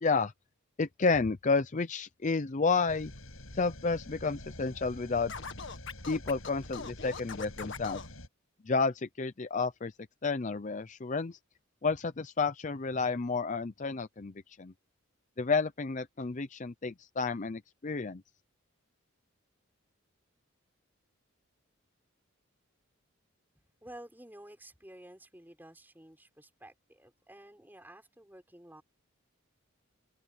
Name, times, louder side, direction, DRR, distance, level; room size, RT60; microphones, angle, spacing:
voice 1, 0.0-0.3 0.8-3.1 3.5-5.3 6.1-8.0 8.6-9.9 10.2-11.4 11.8-14.7 15.4-18.2, left 4 dB, 35° left, 0.5 m, -31 dB
sound 1, 2.9-8.3, left 1 dB, 75° left, 7.8 m, -47 dB
Scratching (performance technique), 5.3-8.1, left 5 dB, 60° left, 1.8 m, -42 dB
voice 2, 23.8-28.8, right 1 dB, 10° right, 5.0 m, -52 dB
open air
head